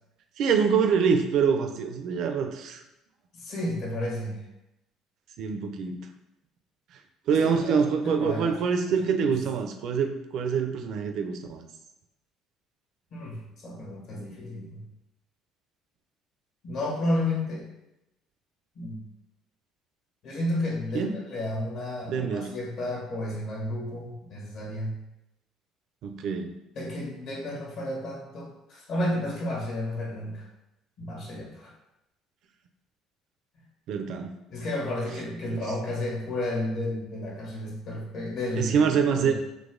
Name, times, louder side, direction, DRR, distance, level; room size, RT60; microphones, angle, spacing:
voice 1, 0.4-2.8 5.4-6.1 7.3-11.6 20.9-21.1 22.1-22.5 26.0-26.5 33.9-34.4 35.4-35.6 38.6-39.3, right 6 dB, 60° right, 6 dB, 0.5 m, -25 dB
voice 2, 3.3-4.4 7.3-8.7 9.0-9.4 13.1-14.8 16.6-17.7 18.7-19.0 20.2-25.0 26.7-30.4 31.0-31.7 34.5-39.3, left 1 dB, 60° left, -4 dB, 1.5 m, -32 dB
4.0 x 3.0 x 3.7 m, 0.89 s
cardioid pair, 140°, 0 cm